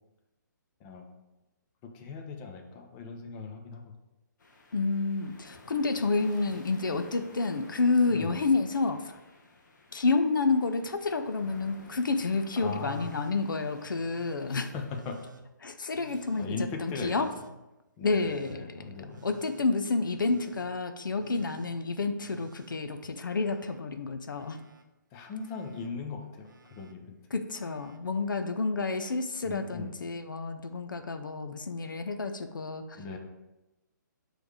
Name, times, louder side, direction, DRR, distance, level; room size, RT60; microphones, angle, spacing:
voice 1, 0.8-1.1 1.9-3.8 8.1-8.4 12.6-13.1 14.5-15.2 16.1-17.3 18.0-19.2 25.1-27.2 29.4-29.9 32.9-33.2, left 4 dB, 25° left, 2 dB, 0.7 m, -39 dB
sound 1, 4.4-15.0, left 3 dB, 65° left, 1.1 m, -54 dB
voice 2, 4.7-9.2 9.9-14.7 15.6-17.3 18.0-18.6 19.2-24.6 27.3-33.0, left 3 dB, 85° left, 8 dB, 0.5 m, -29 dB
Telephone, 12.8-13.3 13.8-14.4 14.9-15.4 15.9-16.5 17.0-17.5 18.0-18.6 19.1-19.6 20.1-20.7 21.2-21.7 22.2-23.8 24.1-24.8 25.4-25.9 26.4-26.9 27.5-28.0 29.2-29.3, right 4 dB, 70° right, 0.7 m, -53 dB
6.2 x 3.2 x 4.9 m, 1.0 s
hypercardioid pair, 145°, 10 cm